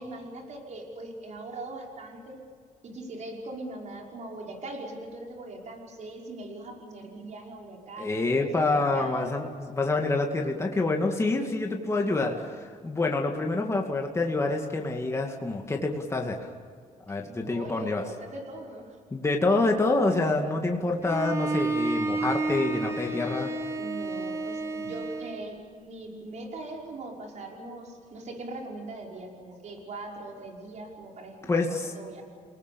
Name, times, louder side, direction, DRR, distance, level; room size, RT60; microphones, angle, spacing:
voice 1, 0.0-2.4 2.8-9.3 17.1-18.9 23.7-32.2, right 2 dB, 55° right, 0 dB, 5.8 m, -41 dB
voice 2, 8.0-16.4 17.1-18.0 19.1-23.5 31.5-31.9, left 2 dB, 20° left, 1 dB, 2.3 m, -27 dB
Bowed string instrument, 21.0-25.4, right 2 dB, 20° right, 3.4 m, -30 dB
29.5 x 19.5 x 7.2 m, 2.1 s
cardioid pair, 120°, 14 cm